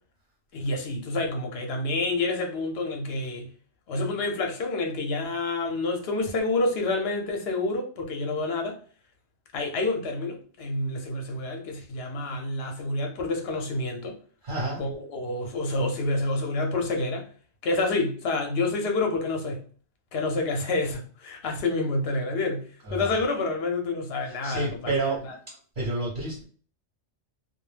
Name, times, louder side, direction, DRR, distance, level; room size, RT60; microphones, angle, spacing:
voice 1, 0.5-3.5 3.9-8.8 9.5-14.2 14.8-17.3 17.6-19.6 20.1-22.6 22.9-24.9 25.2-25.3, left 2 dB, 65° left, 0.9 m, -28 dB
voice 2, 14.4-14.8 22.8-23.1 24.3-25.4 25.8-26.4, right 2 dB, 50° right, 1.0 m, -29 dB
2.3 x 2.1 x 3.1 m
omnidirectional pair, 1.2 m